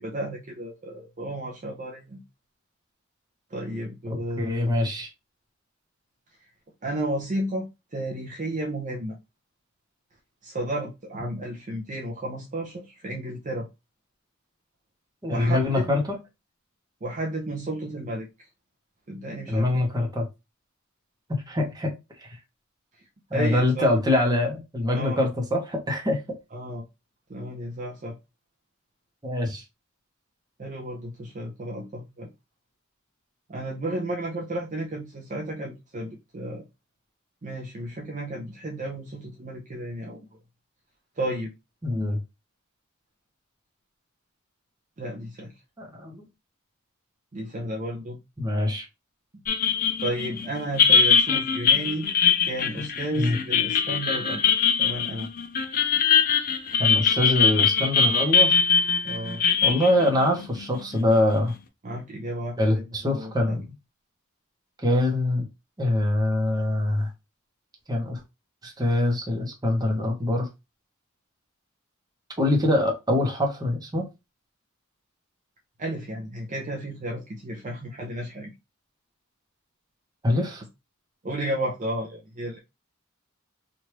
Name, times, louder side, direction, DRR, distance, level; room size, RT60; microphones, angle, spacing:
voice 1, 0.0-2.2 3.5-4.7 6.8-9.2 10.4-13.7 15.3-15.8 17.0-18.5 19.1-19.9 23.3-23.9 24.9-25.2 26.5-26.9 27.3-28.2 30.6-32.3 33.5-36.6 37.4-40.2 41.2-41.5 45.0-45.5 47.3-48.2 50.0-52.1 52.4-55.3 59.0-59.4 61.8-63.6 75.8-78.5 81.2-82.6, right 1 dB, 35° right, 0.6 m, -33 dB
voice 2, 4.1-5.1 15.2-16.2 19.5-20.3 21.3-22.4 23.3-26.2 29.2-29.6 41.8-42.2 45.8-46.3 48.4-48.9 53.1-53.4 56.8-58.6 59.6-61.5 62.6-63.7 64.8-65.5 65.8-67.1 67.9-68.2 68.6-70.5 72.4-74.1 80.2-80.6, left 1 dB, 20° right, 0.9 m, -24 dB
sound 1, 49.5-61.2, left 6 dB, 45° left, 0.5 m, -22 dB
3.2 x 2.5 x 2.9 m
head